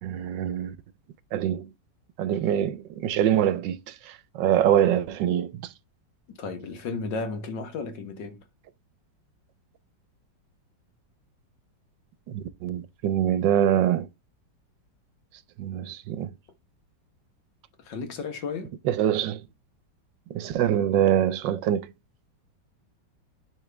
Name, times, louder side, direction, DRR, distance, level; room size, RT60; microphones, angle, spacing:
voice 1, 0.0-0.8 1.3-1.7 2.2-5.7 12.3-14.1 15.6-16.3 18.8-19.4 20.3-21.9, right 10 dB, 75° right, 1.3 m, -24 dB
voice 2, 6.3-8.4 17.8-18.8, left 4 dB, 70° left, 1.9 m, -34 dB
10.5 x 3.8 x 3.4 m
omnidirectional pair, 2.1 m